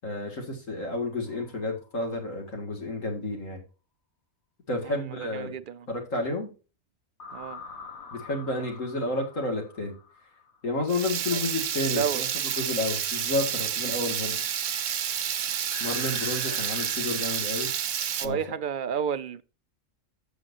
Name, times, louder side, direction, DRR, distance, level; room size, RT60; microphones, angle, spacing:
voice 1, 0.0-3.6 4.7-5.5 5.9-6.5 8.1-10.0 10.6-12.3 12.6-14.3 15.8-17.7 18.2-18.4, left 2 dB, 70° left, 2.6 m, -31 dB
sound 1, 1.3-2.1 7.2-10.9 15.7-17.8, left 5 dB, 90° left, 2.1 m, -45 dB
voice 2, 4.8-5.9 7.3-7.6 11.3-11.4 11.9-12.2 14.3-14.4 16.4-16.6 18.2-19.4, right 8 dB, 50° right, 0.6 m, -32 dB
Water tap faucet / Liquid, 10.9-18.3, right 9 dB, 70° right, 1.1 m, -30 dB
15.0 x 6.3 x 2.7 m
omnidirectional pair, 1.4 m